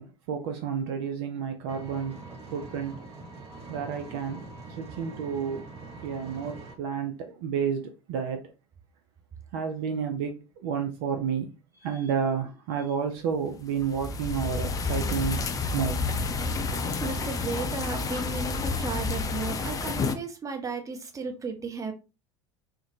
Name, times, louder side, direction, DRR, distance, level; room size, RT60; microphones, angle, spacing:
voice 1, 0.0-2.2 2.5-3.0 3.7-4.4 4.8-5.6 6.0-8.4 9.5-11.5 11.8-15.4 15.7-15.9, right 7 dB, 55° right, 0.5 m, -30 dB
Engine, 1.7-6.7, right 3 dB, 40° right, 1.4 m, -44 dB
sound 1, 13.6-20.1, left 4 dB, 25° left, 0.5 m, -30 dB
voice 2, 17.0-21.9, right 4 dB, 20° right, 0.8 m, -35 dB
3.7 x 2.1 x 2.7 m
figure-of-eight pair, 70°, 15 cm